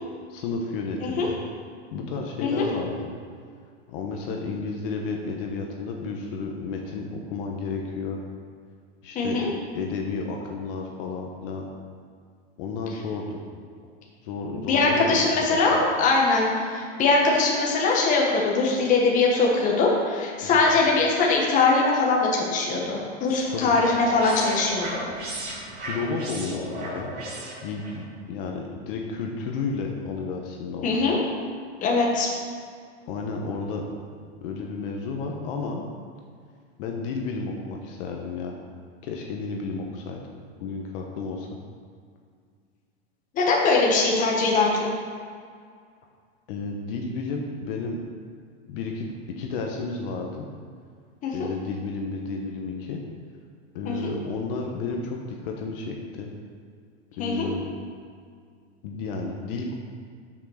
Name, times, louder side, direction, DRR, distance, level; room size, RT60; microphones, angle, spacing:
voice 1, 0.3-1.3 1.9-3.1 3.9-8.2 9.0-9.4 9.7-11.7 12.6-13.4 14.2-15.9 20.4-20.6 23.5-23.7 25.7-27.1 27.6-31.0 33.1-33.8 34.4-35.9 36.8-38.6 39.0-40.2 40.6-41.5 46.5-48.0 48.7-50.4 51.3-53.0 53.7-56.3 57.2-57.7 58.8-59.7, left 4 dB, 50° left, 1 dB, 1.1 m, -32 dB
voice 2, 9.1-9.5 14.5-24.9 30.8-31.2 31.8-32.3 43.3-44.9 51.2-51.3 53.8-54.1 57.2-57.5, left 3 dB, 20° left, -2 dB, 1.3 m, -22 dB
sound 1, 22.8-28.0, right 1 dB, 25° right, 2.0 m, -36 dB
7.4 x 6.2 x 6.4 m, 2.1 s
supercardioid pair, 170°, 35 cm